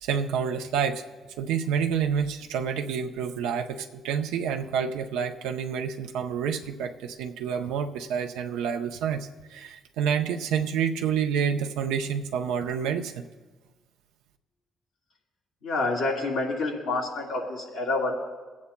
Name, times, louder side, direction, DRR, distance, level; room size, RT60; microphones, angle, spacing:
voice 1, 0.0-1.0 1.4-13.1, right 7 dB, 85° right, 5 dB, 0.6 m, -28 dB
voice 2, 15.6-18.1, left 2 dB, 85° left, -2 dB, 2.7 m, -28 dB
24.5 x 8.4 x 2.2 m, 1.3 s
supercardioid pair, 60°, 0 cm